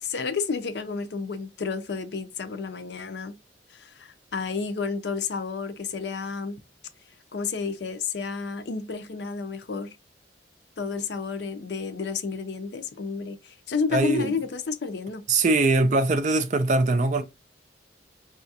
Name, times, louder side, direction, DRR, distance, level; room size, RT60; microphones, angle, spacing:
voice 1, 0.0-3.4 3.7-6.6 7.3-10.0 10.8-15.3, left 5 dB, 65° left, 0.5 m, -31 dB
voice 2, 13.9-14.3 15.3-17.2, right 2 dB, 40° right, 0.4 m, -22 dB
4.7 x 2.3 x 2.7 m
head